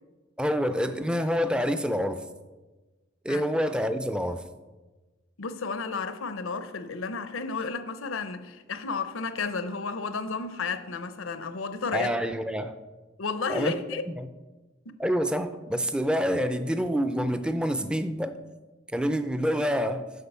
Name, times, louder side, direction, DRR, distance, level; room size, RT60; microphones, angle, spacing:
voice 1, 0.4-2.2 3.2-4.4 11.9-12.7 13.5-13.7 14.2-14.3 15.0-18.4 18.9-20.0, equal, 5° right, 0.4 m, -27 dB
voice 2, 5.4-12.1 13.2-14.0 14.9-15.0, left 4 dB, 85° left, 0.7 m, -32 dB
8.3 x 5.4 x 6.8 m
head